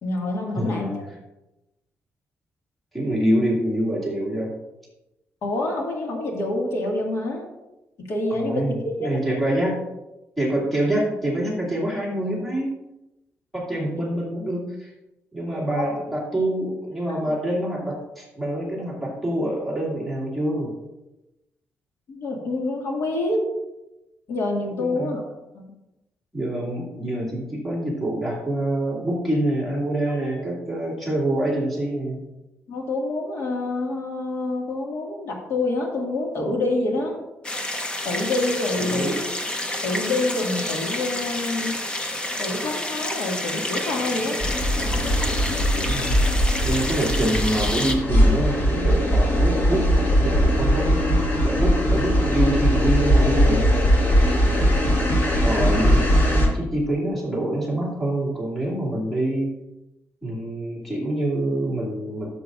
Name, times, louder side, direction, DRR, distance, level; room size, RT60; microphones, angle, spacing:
voice 1, 0.0-1.0 5.4-7.5 8.1-9.2 15.7-15.9 17.1-17.2 22.1-23.5 24.3-25.6 32.7-37.2 38.0-39.1 39.8-41.8 42.4-44.4 54.5-54.8, left 2 dB, 70° left, 0 dB, 2.0 m, -27 dB
voice 2, 0.6-0.9 2.9-4.5 8.3-9.8 10.4-12.7 13.5-14.9 15.3-20.7 24.8-25.2 26.3-32.2 38.8-39.2 45.7-51.1 51.4-53.7 54.4-54.7 55.4-59.5 60.2-62.3, right 1 dB, ahead, -6 dB, 2.4 m, -26 dB
sound 1, 37.4-47.9, left 1 dB, 20° left, 0.9 m, -29 dB
sound 2, 44.4-56.5, equal, 45° left, 2.1 m, -20 dB
13.0 x 7.4 x 2.6 m, 0.97 s
cardioid pair, 145°, 5 cm